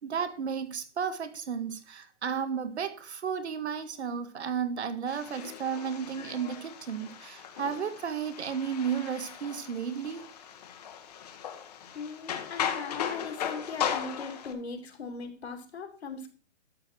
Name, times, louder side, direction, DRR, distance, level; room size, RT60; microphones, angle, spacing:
voice 1, 0.0-10.3, right 7 dB, 65° right, 1.8 m, -33 dB
sound 1, 5.1-14.5, left 9 dB, 35° left, 1.4 m, -37 dB
voice 2, 11.9-16.3, left 4 dB, 60° left, 2.8 m, -39 dB
12.0 x 6.7 x 4.5 m
hypercardioid pair, 165°, 36 cm